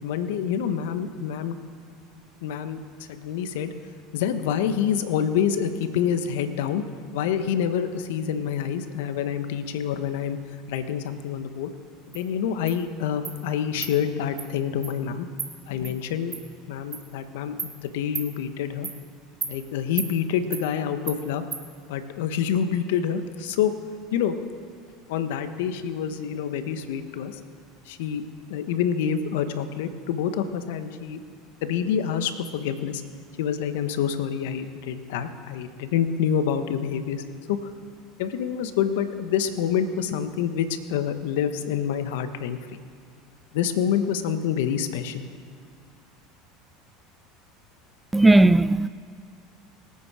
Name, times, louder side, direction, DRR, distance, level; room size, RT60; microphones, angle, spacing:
voice 1, 0.0-1.6 2.4-2.8 3.1-3.7 4.1-6.8 7.1-10.4 10.7-11.7 12.1-15.3 15.7-16.3 16.7-18.9 19.4-21.4 21.9-23.7 24.1-24.3 25.1-27.4 27.9-28.2 28.5-31.2 31.6-33.0 33.4-37.2 37.5-37.7 38.2-42.6 43.5-45.3, left 8 dB, 75° left, 1.2 m, -27 dB
Insect, 12.1-12.2 12.7-12.8 13.2-13.4 13.8-13.9 14.4-14.5 14.8-14.9 15.4-15.5 15.8-15.9 16.3-16.4 16.9-17.0 17.6-17.7 18.1-18.3 18.8-19.0 19.4-19.5 20.0-20.1 20.5-20.6 21.1-21.2 21.5-21.6, right 6 dB, 35° right, 2.7 m, -33 dB
voice 2, 48.1-48.9, right 2 dB, 10° right, 0.4 m, -16 dB
25.0 x 8.6 x 4.9 m
hypercardioid pair, 90°, 0 cm